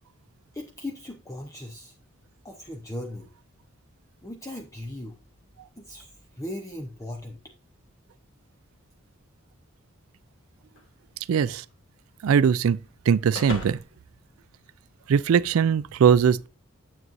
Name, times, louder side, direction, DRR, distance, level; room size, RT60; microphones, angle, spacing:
voice 1, 0.5-2.0 2.4-3.3 4.2-5.2 5.8-7.4, left 1 dB, 15° left, 0.7 m, -38 dB
sound 1, 10.8-15.2, left 3 dB, 60° left, 1.8 m, -43 dB
voice 2, 11.3-11.6 12.2-12.8 13.1-13.8 15.1-16.5, right 7 dB, 80° right, 0.3 m, -20 dB
9.6 x 7.5 x 2.6 m
head